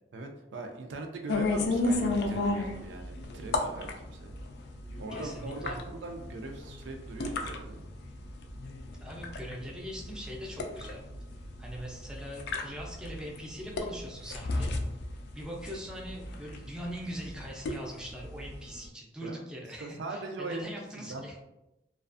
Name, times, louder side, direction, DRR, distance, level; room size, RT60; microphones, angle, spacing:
voice 1, 0.1-4.3 5.0-7.8 19.2-19.4 19.8-20.6 21.0-21.4, right 2 dB, 80° right, 4 dB, 0.4 m, -40 dB
sound 1, 1.3-18.8, left 2 dB, 65° left, 0.3 m, -34 dB
voice 2, 5.1-5.8 9.0-11.0 11.6-14.7 15.3-21.4, equal, 5° right, -2 dB, 0.4 m, -42 dB
2.4 x 2.3 x 2.4 m, 0.92 s
head